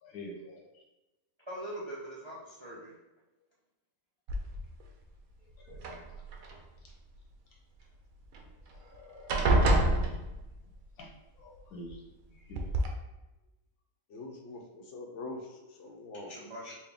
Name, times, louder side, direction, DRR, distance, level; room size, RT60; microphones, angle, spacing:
voice 1, 0.0-0.8 5.6-5.8 8.8-9.6 11.0-11.1 11.4-12.7, left 1 dB, 85° left, -2 dB, 1.4 m, -48 dB
voice 2, 1.5-2.9 16.2-16.7, right 1 dB, 40° right, -6 dB, 0.4 m, -42 dB
sound 1, 4.3-4.9 5.7-6.5 8.3-8.4 8.7-9.0 9.3-10.7 11.9-12.0 12.5-12.9, right 1 dB, 75° right, 1.0 m, -27 dB
voice 3, 14.1-16.3, left 2 dB, 65° left, 1 dB, 0.9 m, -43 dB
4.4 x 2.2 x 3.4 m, 1.0 s
omnidirectional pair, 1.5 m